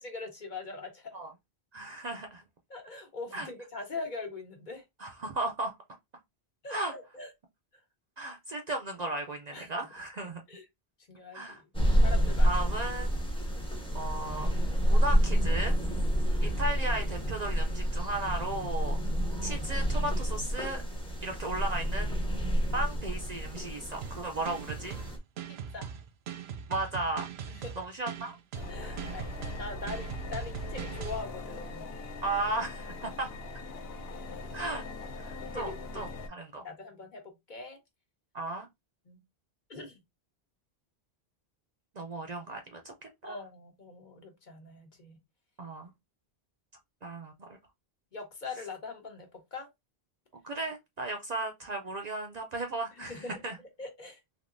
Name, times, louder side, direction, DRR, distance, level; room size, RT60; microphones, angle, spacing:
voice 1, 0.0-1.1 2.7-4.8 6.6-7.3 9.5-9.9 10.5-10.6 11.1-11.6 12.0-12.6 16.2-16.6 25.7-25.9 27.5-27.7 28.7-31.9 35.4-36.0 36.6-37.8 39.1-39.2 39.7-40.0 43.2-45.2 48.1-49.7 52.9-53.4 53.8-54.2, left 3 dB, 50° left, 1.0 m, -42 dB
voice 2, 1.7-2.4 3.3-3.5 5.0-5.7 6.7-6.9 8.2-10.4 11.3-11.6 12.4-13.3 13.9-14.5 14.9-15.7 16.4-19.0 19.4-20.8 21.2-22.2 22.7-25.0 26.7-27.3 27.8-28.4 28.8-29.2 32.2-33.4 34.5-34.8 35.2-36.6 38.3-38.7 42.0-43.4 45.6-45.9 47.0-47.5 50.4-53.6, right 2 dB, 50° right, 0.6 m, -35 dB
sound 1, 11.7-25.2, equal, 5° left, 0.7 m, -28 dB
sound 2, 24.0-31.2, right 8 dB, 80° right, 0.8 m, -41 dB
sound 3, 28.5-36.3, left 2 dB, 70° left, 0.9 m, -40 dB
3.5 x 2.8 x 2.5 m
omnidirectional pair, 1.1 m